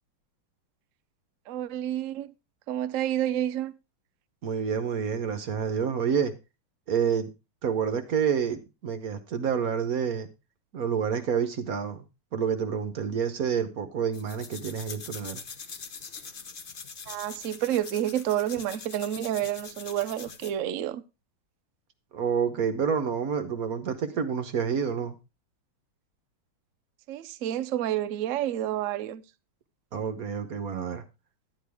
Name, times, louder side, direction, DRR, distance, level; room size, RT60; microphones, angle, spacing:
voice 1, 1.5-2.3 2.7-3.7 17.1-21.0 27.1-29.2, right 12 dB, 75° right, 0.7 m, -29 dB
voice 2, 4.4-6.3 6.9-7.3 7.6-10.3 10.7-12.1 12.3-15.4 22.1-25.2 29.9-31.0, right 7 dB, 55° right, 1.1 m, -28 dB
sound 1, 14.1-20.6, left 5 dB, 65° left, 0.5 m, -43 dB
11.0 x 10.0 x 3.5 m
omnidirectional pair, 2.4 m